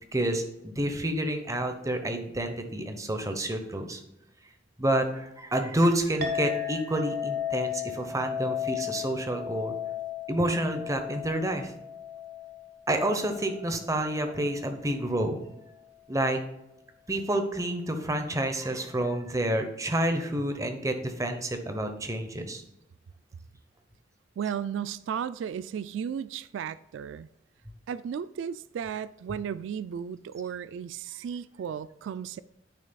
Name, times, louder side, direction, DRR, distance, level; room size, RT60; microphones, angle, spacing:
voice 1, 0.1-4.0 4.8-9.7 10.3-11.8 12.9-15.5 16.1-16.4 17.1-22.6, right 1 dB, 15° right, 5 dB, 0.9 m, -29 dB
Chink clink, 6.2-14.9, left 8 dB, 55° right, 1.2 m, -35 dB
voice 2, 24.4-27.3 27.9-32.4, right 8 dB, 80° right, 17 dB, 0.3 m, -34 dB
9.2 x 6.5 x 2.3 m, 0.87 s
head